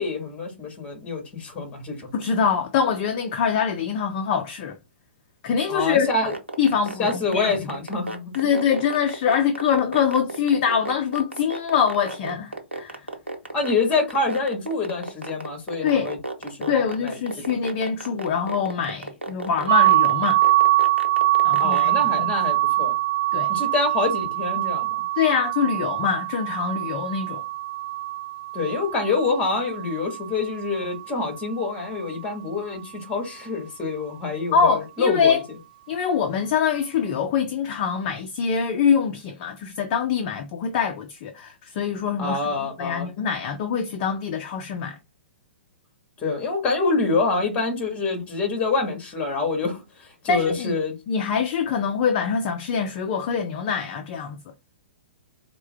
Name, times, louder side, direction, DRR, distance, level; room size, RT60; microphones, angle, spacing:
voice 1, 0.0-2.3 5.7-6.3 7.0-8.3 13.5-16.2 16.4-17.6 21.6-23.0 23.5-25.0 28.5-35.4 42.2-43.1 46.2-49.8 50.2-50.9, left 3 dB, 25° left, 1.5 m, -26 dB
voice 2, 2.1-4.8 5.4-6.1 6.6-7.5 8.3-13.0 15.8-16.1 16.7-20.4 21.4-22.3 23.3-23.5 25.2-27.4 34.5-35.4 35.9-42.4 42.8-45.0 50.3-50.7 51.1-54.4, left 7 dB, 40° left, 0.5 m, -24 dB
sound 1, 6.2-21.8, right 1 dB, 90° right, 0.9 m, -32 dB
sound 2, 19.7-31.4, right 17 dB, 45° right, 0.6 m, -23 dB
4.3 x 2.2 x 3.4 m
figure-of-eight pair, 115°, 6 cm